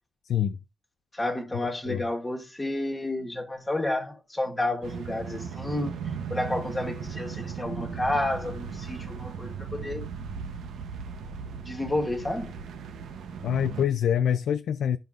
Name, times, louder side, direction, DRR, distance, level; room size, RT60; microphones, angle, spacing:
voice 1, 0.3-0.6 1.9-2.0 13.4-15.0, left 9 dB, 75° left, 0.4 m, -25 dB
voice 2, 1.1-5.9 6.3-10.1 11.6-12.5, left 2 dB, 10° left, 1.5 m, -30 dB
sound 1, 4.8-13.8, right 6 dB, 85° right, 0.8 m, -37 dB
13.5 x 5.2 x 2.5 m
wide cardioid pair, 150°, 0 cm